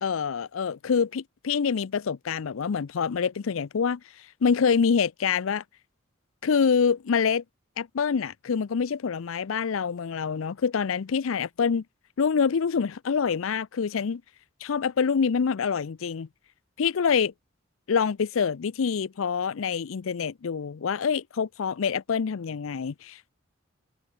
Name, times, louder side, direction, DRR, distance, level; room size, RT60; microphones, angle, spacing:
voice 1, 0.0-4.0 4.4-5.6 6.4-7.4 7.8-11.8 12.2-14.2 14.6-16.3 16.8-17.3 17.9-23.3, left 6 dB, 75° left, 0.5 m, -26 dB
head